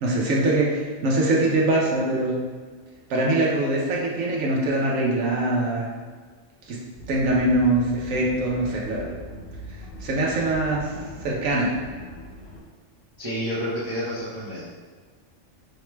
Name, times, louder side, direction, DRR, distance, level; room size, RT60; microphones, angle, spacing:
voice 1, 0.0-2.3 3.1-5.9 6.7-6.8 7.1-9.2 10.0-10.9 11.2-11.7, right 2 dB, 85° right, -3 dB, 1.0 m, -23 dB
sound 1, 6.9-12.6, equal, 45° left, 0.7 m, -40 dB
voice 2, 13.2-14.6, equal, 30° right, -10 dB, 0.5 m, -29 dB
4.8 x 2.2 x 3.0 m, 1.5 s
omnidirectional pair, 1.3 m